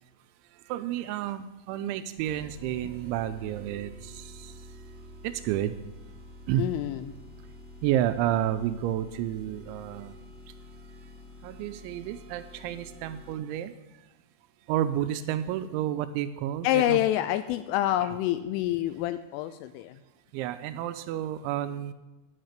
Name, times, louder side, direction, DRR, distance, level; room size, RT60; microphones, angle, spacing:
voice 1, 0.5-4.7 5.2-5.8 6.5-6.7 7.8-10.2 11.4-13.7 14.7-17.0 20.3-21.9, right 11 dB, 85° right, 11 dB, 2.7 m, -30 dB
sound 1, 2.2-13.6, left 1 dB, 40° left, 1.1 m, -48 dB
voice 2, 6.6-7.1 16.6-20.0, left 13 dB, 85° left, 11 dB, 3.0 m, -27 dB
13.5 x 10.0 x 6.6 m, 1.1 s
omnidirectional pair, 5.9 m